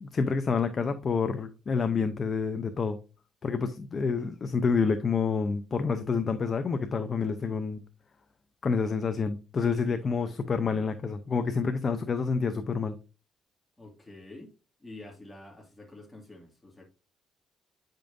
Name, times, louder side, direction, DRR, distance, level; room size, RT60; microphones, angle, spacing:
voice 1, 0.0-3.0 3.4-7.8 8.6-13.0, left 5 dB, 40° left, 0.6 m, -28 dB
voice 2, 9.8-10.4 13.8-14.5 14.8-16.8, left 2 dB, 15° left, 2.1 m, -48 dB
8.8 x 5.3 x 2.6 m
cardioid pair, 90°, 0 cm